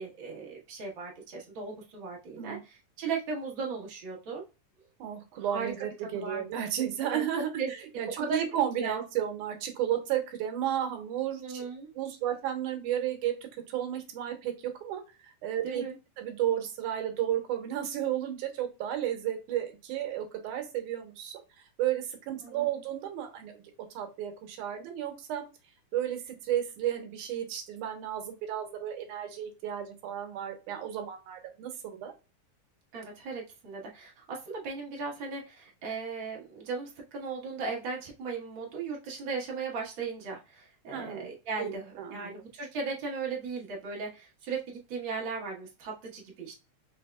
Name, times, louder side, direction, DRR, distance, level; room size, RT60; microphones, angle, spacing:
voice 1, 0.0-4.4 5.4-5.7 6.1-6.7 7.1-7.2 7.6-7.7 8.2-8.4 8.8-9.0 11.4-11.9 15.6-16.0 22.4-22.6 32.9-46.5, right 4 dB, 55° right, -2 dB, 1.4 m, -37 dB
voice 2, 5.0-11.7 12.0-13.3 13.7-15.8 16.2-21.4 21.8-23.6 24.0-25.4 25.9-32.1 40.9-41.3 41.6-42.3, right 11 dB, 80° right, 5 dB, 2.3 m, -33 dB
5.0 x 3.4 x 2.2 m, 0.29 s
omnidirectional pair, 3.6 m